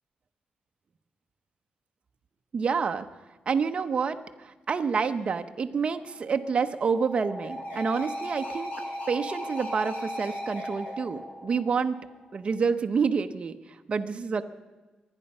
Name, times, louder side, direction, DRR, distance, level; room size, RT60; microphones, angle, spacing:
voice 1, 2.5-3.1 3.5-8.7 9.1-12.0 12.3-13.6 13.9-14.4, right 5 dB, 45° right, 7 dB, 0.9 m, -28 dB
sound 1, 6.0-12.4, equal, 70° left, 5.2 m, -37 dB
24.0 x 10.0 x 5.5 m, 1.2 s
wide cardioid pair, 130°, 3 cm